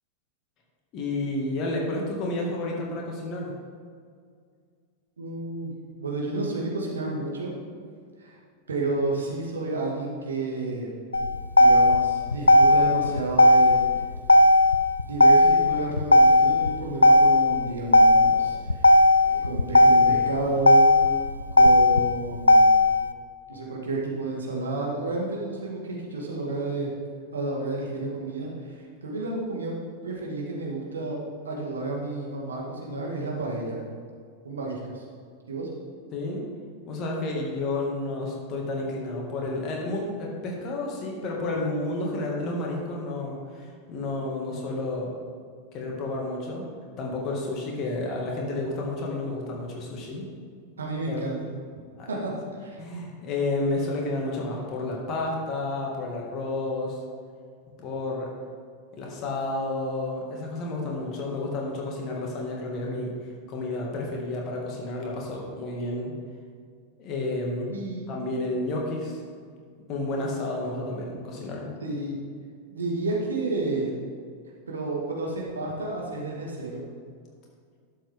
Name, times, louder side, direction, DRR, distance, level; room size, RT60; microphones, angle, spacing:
voice 1, 0.9-3.5 36.1-36.4 36.9-45.1 45.7-46.6 47.0-50.3 51.1-51.2 52.0-52.1 52.8-57.0 57.8-58.3 59.0-63.1 63.5-66.1 67.0-67.7 68.1-69.2 69.9-71.7, left 2 dB, 35° left, -1 dB, 2.3 m, -31 dB
voice 2, 5.2-5.7 6.0-7.5 8.2-8.4 8.7-10.9 11.6-13.8 15.0-18.9 19.2-21.0 21.5-22.9 23.5-26.9 27.3-29.8 30.0-33.8 34.4-35.0 35.5-35.7 50.8-51.4 52.1-52.3 52.6-52.8 67.7-68.1 71.8-72.1 72.7-73.9 74.7-76.8, right 2 dB, 70° right, -2 dB, 2.1 m, -31 dB
Motor vehicle (road), 11.1-23.1, left 1 dB, 80° left, 0.3 m, -17 dB
11.5 x 7.7 x 3.8 m, 2.1 s
figure-of-eight pair, 90°, 0 cm